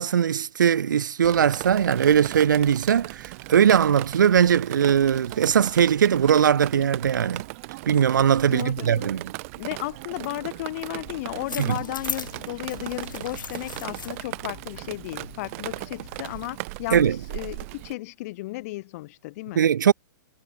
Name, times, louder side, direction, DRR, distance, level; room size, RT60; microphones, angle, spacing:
voice 1, 0.0-7.4 7.9-9.2 11.6-11.8 16.9-17.2 19.5-19.9, right 8 dB, 70° right, 1.6 m, -20 dB
Drip, 1.2-17.9, right 23 dB, 45° right, 1.3 m, -37 dB
voice 2, 8.5-9.1 9.6-19.6, left 20 dB, 50° left, 3.4 m, -34 dB
sound 1, 11.1-16.5, left 6 dB, 75° left, 3.6 m, -40 dB
hypercardioid pair, 115°, 11 cm